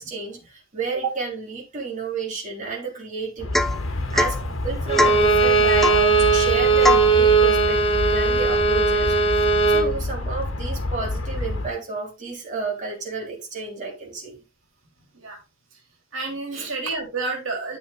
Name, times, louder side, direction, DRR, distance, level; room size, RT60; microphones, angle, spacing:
voice 1, 0.0-14.4 16.5-16.7, right 4 dB, 40° right, -1 dB, 3.6 m, -31 dB
Aircraft, 3.4-11.7, left 2 dB, 80° left, 1.6 m, -29 dB
Domestic sounds home sounds / Chink clink / Drip, 3.5-3.8 4.1-4.4 5.0-5.3 5.8-6.1 6.8-7.1, left 2 dB, ahead, 0.5 m, -21 dB
Bowed string instrument, 4.9-9.9, right 4 dB, 30° left, 1.3 m, -18 dB
voice 2, 16.1-17.8, right 4 dB, 80° right, 2 dB, 3.1 m, -29 dB
10.5 x 6.9 x 3.3 m, 0.25 s
head